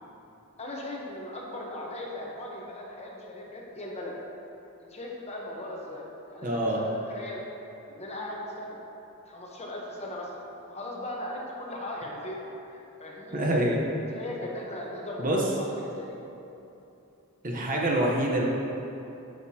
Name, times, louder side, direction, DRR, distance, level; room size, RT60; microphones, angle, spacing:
voice 1, 0.6-4.2 4.8-6.0 6.3-7.4 7.9-8.8 9.3-12.4 12.7-13.4 14.1-16.2, left 1 dB, 30° left, -2 dB, 0.9 m, -38 dB
voice 2, 6.4-6.8 13.3-13.8 15.2-15.5 17.4-18.4, right 1 dB, 40° right, -2 dB, 0.9 m, -26 dB
9.6 x 6.5 x 2.8 m, 2.9 s
head